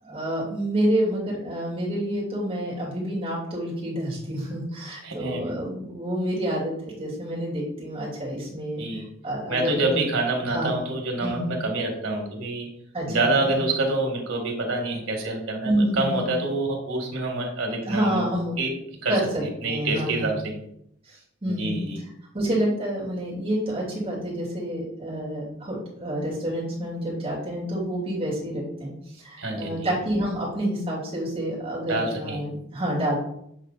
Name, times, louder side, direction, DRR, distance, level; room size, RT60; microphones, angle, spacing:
voice 1, 0.0-8.8 9.2-10.0 10.5-10.8 11.2-11.6 12.9-13.7 15.6-16.3 17.8-18.6 19.1-20.3 21.0-21.9 22.3-33.2, right 1 dB, 30° right, -6 dB, 2.7 m, -28 dB
voice 2, 5.0-5.5 8.8-9.1 9.5-12.7 13.1-18.2 18.6-18.7 19.0-20.5 21.5-22.0 29.4-29.9 31.9-32.4, right 2 dB, 90° right, 1 dB, 1.8 m, -27 dB
7.7 x 3.7 x 4.1 m, 0.74 s
head